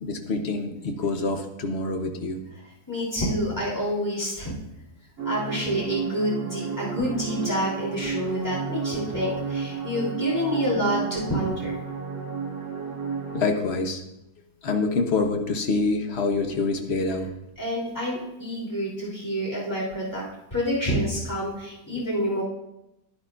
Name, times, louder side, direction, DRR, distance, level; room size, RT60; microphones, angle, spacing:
voice 1, 0.0-2.4 13.3-14.0 14.6-17.3, left 3 dB, 45° left, 5 dB, 1.0 m, -26 dB
voice 2, 2.9-4.5 5.2-11.8 17.6-20.2 20.5-22.4, equal, 10° left, -5 dB, 3.1 m, -28 dB
sound 1, 5.2-13.4, right 5 dB, 65° right, 1.9 m, -32 dB
11.5 x 11.0 x 2.5 m, 0.88 s
omnidirectional pair, 1.8 m